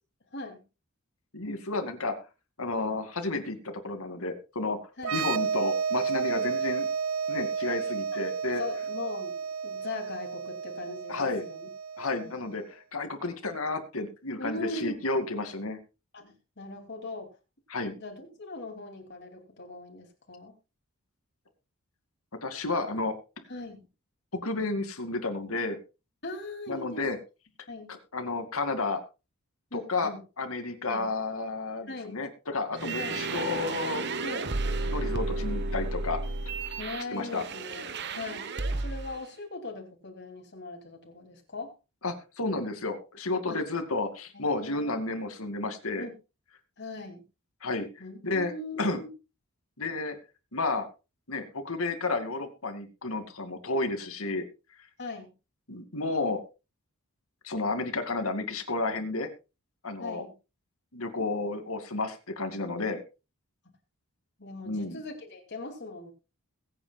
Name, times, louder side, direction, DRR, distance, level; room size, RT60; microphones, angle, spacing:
voice 1, 1.3-2.1 2.6-4.8 5.1-6.9 7.3-8.6 11.1-11.4 12.0-15.8 17.7-17.9 22.4-23.1 24.3-25.8 26.7-27.2 27.9-29.0 29.7-30.1 30.4-34.1 34.9-36.2 37.1-37.4 42.0-46.1 47.6-47.9 48.2-48.5 48.8-49.0 49.8-50.2 50.5-50.9 51.3-54.5 55.7-56.4 57.4-59.3 59.8-60.2 60.9-63.0 64.7-65.0, left 3 dB, 75° left, 7 dB, 2.4 m, -31 dB
sound 1, 5.0-12.5, right 6 dB, 70° right, 0.6 m, -32 dB
voice 2, 8.6-9.3 9.6-11.7 12.2-12.3 14.4-15.0 16.1-17.3 18.0-20.5 23.5-23.8 26.2-27.1 27.7-27.9 29.7-30.2 30.9-31.1 31.9-32.2 33.0-33.2 34.2-34.5 36.8-41.7 43.5-43.6 44.3-45.2 46.0-46.1 46.8-47.2 48.0-49.1 55.0-55.3 60.0-60.3 64.4-66.1, left 2 dB, 55° left, 2 dB, 2.9 m, -40 dB
sound 2, 32.7-39.2, right 3 dB, 50° right, 1.1 m, -32 dB
22.0 x 8.9 x 2.4 m, 0.29 s
head